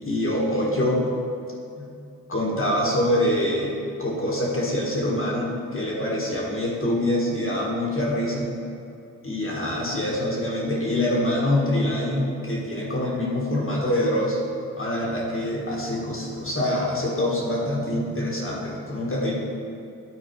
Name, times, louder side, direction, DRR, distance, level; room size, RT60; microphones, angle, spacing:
voice 1, 0.0-1.0 1.7-1.9 2.3-3.7 4.0-8.5 9.2-14.4 14.8-19.3, left 1 dB, 35° left, -4 dB, 1.6 m, -25 dB
9.1 x 4.0 x 4.7 m, 2.6 s
cardioid pair, 50°, 35 cm